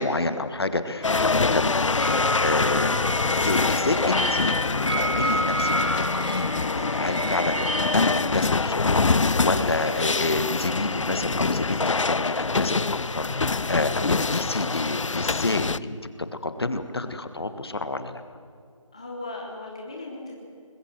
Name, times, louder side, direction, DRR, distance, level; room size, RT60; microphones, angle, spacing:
voice 1, 0.0-2.9 3.3-12.8 13.1-16.0 16.4-18.2, left 2 dB, 50° left, 9 dB, 1.5 m, -29 dB
sound 1, 1.0-15.8, left 4 dB, 65° left, 0.6 m, -25 dB
sound 2, 2.0-8.2, equal, 85° left, 4.2 m, -29 dB
voice 2, 18.9-20.4, left 2 dB, 10° left, -1 dB, 0.8 m, -38 dB
22.5 x 20.5 x 7.7 m, 2.3 s
figure-of-eight pair, 175°, 17 cm